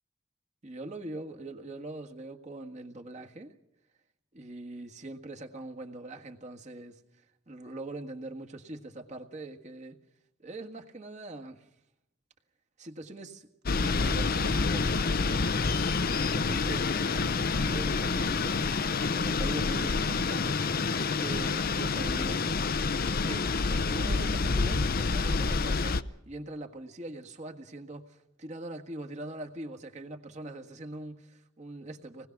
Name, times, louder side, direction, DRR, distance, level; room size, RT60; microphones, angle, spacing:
voice 1, 0.6-3.5 4.3-7.0 7.5-10.0 10.4-11.7 12.8-13.5 13.8-15.4 16.1-18.7 19.1-22.6 23.0-23.5 23.9-32.3, right 2 dB, 40° right, 1.7 m, -42 dB
sound 1, 13.7-26.0, left 4 dB, 50° left, 0.7 m, -28 dB
26.0 x 19.5 x 6.0 m
head